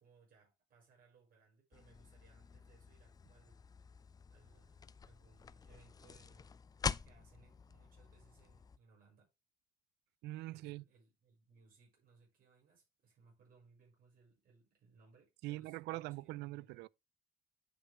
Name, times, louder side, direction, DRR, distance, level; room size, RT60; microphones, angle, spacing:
voice 1, 0.0-3.6 4.3-6.6 6.9-9.3 10.5-16.8, right 4 dB, 60° right, 6.2 m, -67 dB
sound 1, 1.7-8.8, left 6 dB, 20° left, 0.4 m, -46 dB
voice 2, 10.2-10.8 15.4-16.9, right 18 dB, 85° right, 0.4 m, -43 dB
9.9 x 5.8 x 3.5 m
cardioid pair, 110°, 17 cm